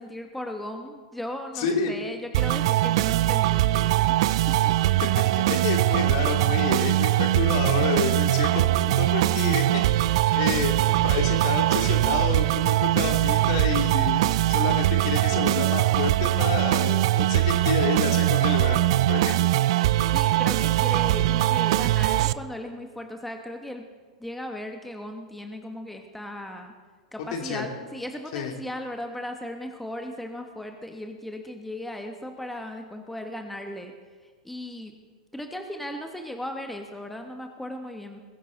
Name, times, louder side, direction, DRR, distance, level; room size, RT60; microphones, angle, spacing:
voice 1, 0.0-4.2 4.6-4.7 20.1-23.8 24.2-26.7 27.1-33.9 34.2-34.9 35.3-38.2, left 1 dB, 5° left, 4 dB, 1.6 m, -37 dB
voice 2, 1.6-1.9 5.2-10.8 11.0-19.5 27.3-27.7 28.3-28.5, left 6 dB, 50° left, 3 dB, 2.9 m, -29 dB
sound 1, 2.3-22.3, right 15 dB, 55° right, 0.5 m, -22 dB
sound 2, 8.1-13.4, right 8 dB, 30° right, 2.2 m, -39 dB
21.0 x 16.0 x 4.0 m, 1.4 s
figure-of-eight pair, 100°, 3 cm